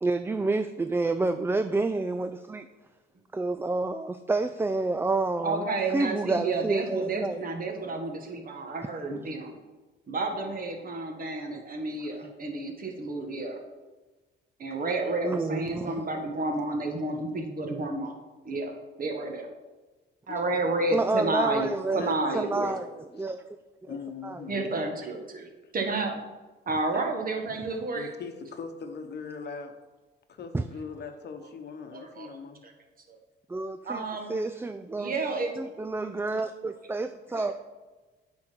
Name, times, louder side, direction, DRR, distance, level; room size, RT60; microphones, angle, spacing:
voice 1, 0.0-2.7 3.3-7.4 15.2-16.0 20.9-22.1 22.3-22.9 23.1-23.4 23.8-23.9 24.2-24.4 30.5-30.6 33.5-34.0 34.3-35.2 35.6-37.5, right 3 dB, 10° right, 9 dB, 0.3 m, -29 dB
voice 2, 5.4-9.5 10.1-13.6 14.6-18.1 18.4-18.7 19.0-19.5 20.3-21.7 21.9-22.8 24.5-25.5 25.7-26.2 26.7-28.1 31.9-32.4 32.6-32.7 33.1-33.2 33.8-34.4 35.0-35.5 37.3-37.5, right 2 dB, 45° right, 3 dB, 1.5 m, -31 dB
voice 3, 20.3-20.6 21.9-22.5 23.2-23.3 23.9-24.7 25.6-25.7 27.9-29.7 30.3-32.6, left 5 dB, 60° left, 7 dB, 1.0 m, -40 dB
8.7 x 3.8 x 5.9 m, 1.2 s
cardioid pair, 90°, 20 cm